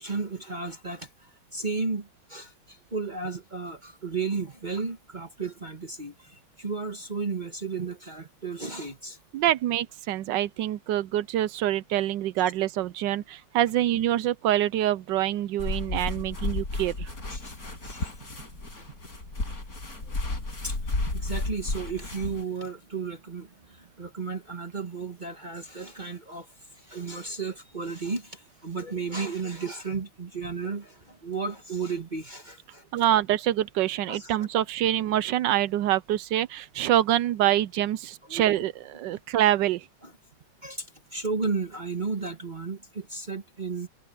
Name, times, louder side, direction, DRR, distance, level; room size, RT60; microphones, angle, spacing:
voice 1, 0.0-9.2 17.3-17.6 17.8-18.2 18.8-18.9 20.0-20.1 20.6-20.8 21.0-26.5 26.7-32.9 34.1-34.3 38.3-38.6 40.0-40.1 40.6-43.9, right 4 dB, 25° right, 1.4 m, -34 dB
voice 2, 9.3-17.1 32.9-39.9, right 12 dB, 75° right, 1.1 m, -25 dB
sound 1, 15.6-22.4, left 2 dB, 45° left, 5.7 m, -33 dB
omnidirectional pair, 2.2 m